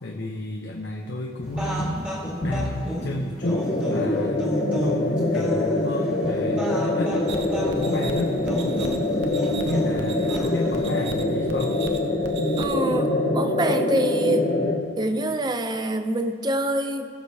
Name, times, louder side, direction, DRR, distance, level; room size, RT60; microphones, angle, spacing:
voice 1, 0.0-2.0 2.4-4.5 4.8-8.3 9.6-11.8, left 1 dB, 70° left, 0 dB, 0.7 m, -31 dB
sound 1, 1.4-10.9, equal, 5° right, 1.9 m, -32 dB
sound 2, 3.4-14.8, left 2 dB, 45° left, 1.2 m, -24 dB
sound 3, 7.3-13.0, right 4 dB, 65° right, 0.8 m, -39 dB
voice 2, 12.6-14.5 15.0-17.1, right 1 dB, 25° right, 7 dB, 0.6 m, -25 dB
19.0 x 6.6 x 2.8 m, 2.2 s
head